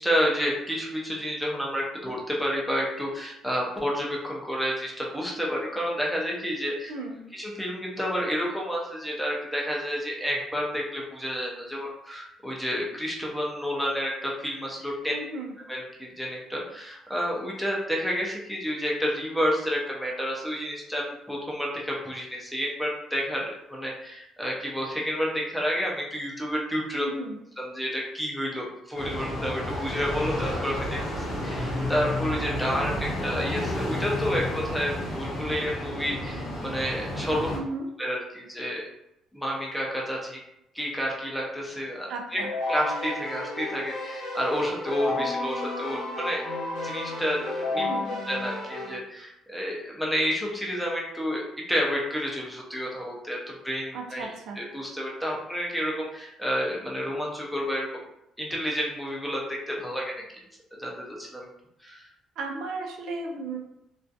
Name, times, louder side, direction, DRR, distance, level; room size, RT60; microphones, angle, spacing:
voice 1, 0.0-7.0 7.3-15.1 15.7-27.1 27.6-37.5 38.0-38.8 39.3-40.4 40.7-42.4 42.7-46.4 46.8-47.8 48.2-51.4 51.7-57.9 58.4-60.2 60.8-61.5 61.8-62.1, equal, ahead, -3 dB, 0.4 m, -30 dB
voice 2, 6.9-7.2 15.1-15.5 27.0-27.4 37.5-37.9 42.1-42.5 47.8-48.2 53.9-54.6 62.4-63.6, right 3 dB, 65° right, 1 dB, 0.4 m, -35 dB
sound 1, 28.9-37.6, left 1 dB, 40° left, 0.7 m, -31 dB
Keyboard (musical), 42.4-49.0, left 2 dB, 75° left, 0.7 m, -32 dB
2.3 x 2.3 x 2.6 m, 0.82 s
cardioid pair, 180°, 0 cm